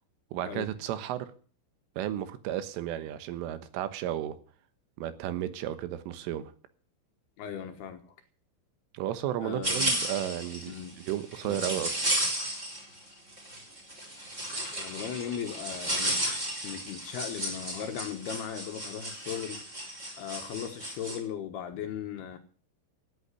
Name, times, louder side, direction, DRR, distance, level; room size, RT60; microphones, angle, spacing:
voice 1, 0.3-1.3 2.0-4.4 5.0-6.5 8.9-12.0, right 12 dB, 85° right, 3.7 m, -33 dB
voice 2, 7.4-8.2 9.4-9.9 10.7-11.0 11.4-11.7 14.5-16.3 16.6-19.8 20.2-22.4, left 8 dB, 65° left, 2.8 m, -38 dB
sound 1, 9.6-13.0 13.3-21.2, right 1 dB, 15° right, 3.9 m, -33 dB
16.5 x 8.5 x 8.4 m
omnidirectional pair, 5.7 m